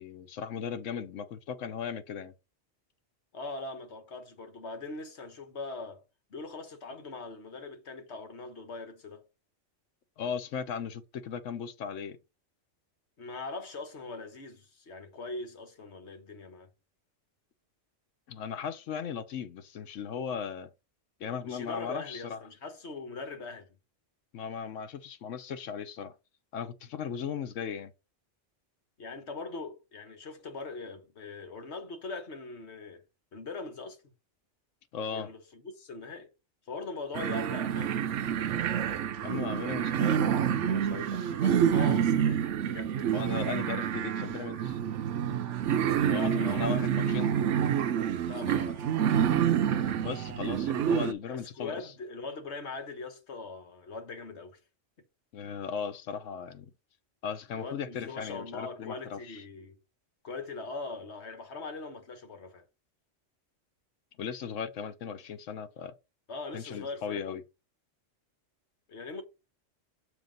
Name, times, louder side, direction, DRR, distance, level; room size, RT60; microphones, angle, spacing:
voice 1, 0.0-2.3 10.2-12.2 18.3-20.7 21.2-22.4 24.3-26.1 26.5-27.9 34.9-35.3 39.2-41.2 43.1-44.8 46.1-47.3 50.0-51.8 55.3-56.7 57.2-59.4 64.2-65.9 66.5-67.4, left 7 dB, 90° left, 1.2 m, -37 dB
voice 2, 3.3-6.0 6.3-9.2 13.2-16.7 21.4-23.7 29.0-33.0 33.3-34.0 35.1-36.3 36.7-37.9 41.4-43.0 45.9-46.7 47.1-47.4 48.2-49.0 51.3-54.6 57.5-59.8 60.2-62.6 66.3-67.2 68.9-69.2, left 3 dB, 65° left, 1.6 m, -41 dB
sound 1, 37.1-51.1, right 9 dB, 75° right, 1.0 m, -28 dB
7.0 x 3.4 x 5.2 m
omnidirectional pair, 1.3 m